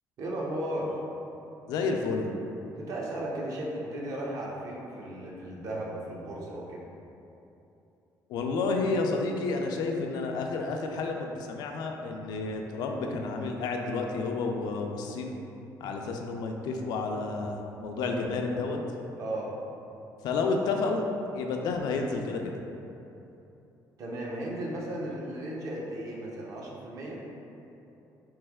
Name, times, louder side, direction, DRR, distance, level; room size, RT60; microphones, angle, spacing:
voice 1, 0.2-1.0 2.7-6.8 19.2-19.5 24.0-27.2, right 1 dB, 50° right, -3 dB, 0.6 m, -35 dB
voice 2, 1.7-2.3 8.3-15.4 15.8-18.8 20.2-21.0 21.3-22.5, left 3 dB, 80° left, 2 dB, 0.4 m, -30 dB
3.2 x 3.0 x 3.5 m, 2.9 s
cardioid pair, 175°, 7 cm